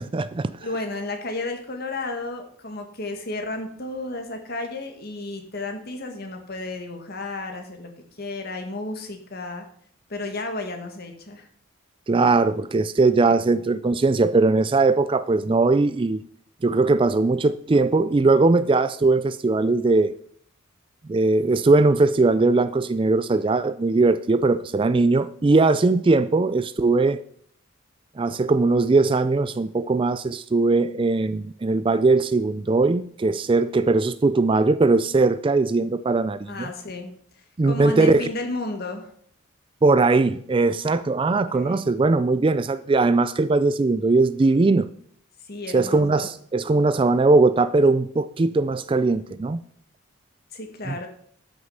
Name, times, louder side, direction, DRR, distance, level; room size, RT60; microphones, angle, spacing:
voice 1, 0.0-0.5 12.1-16.2 16.6-20.1 21.1-27.2 28.2-36.7 37.6-38.3 39.8-44.9 45.7-49.6 50.9-51.1, right 3 dB, 25° right, 0.3 m, -20 dB
voice 2, 0.6-7.9 8.2-9.7 10.1-11.5 36.5-37.1 37.6-39.1 41.3-41.8 45.5-46.3 50.5-51.1, left 2 dB, 50° left, 1.8 m, -32 dB
13.0 x 6.3 x 5.5 m
head